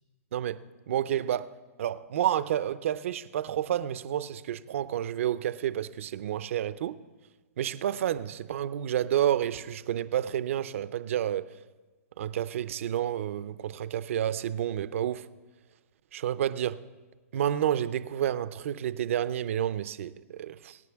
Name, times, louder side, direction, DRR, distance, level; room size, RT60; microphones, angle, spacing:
voice 1, 0.3-7.0 7.6-11.5 12.2-15.3 16.1-16.8 17.3-20.8, right 11 dB, 60° right, 0.6 m, -30 dB
24.0 x 9.2 x 3.5 m
hypercardioid pair, 160°, 8 cm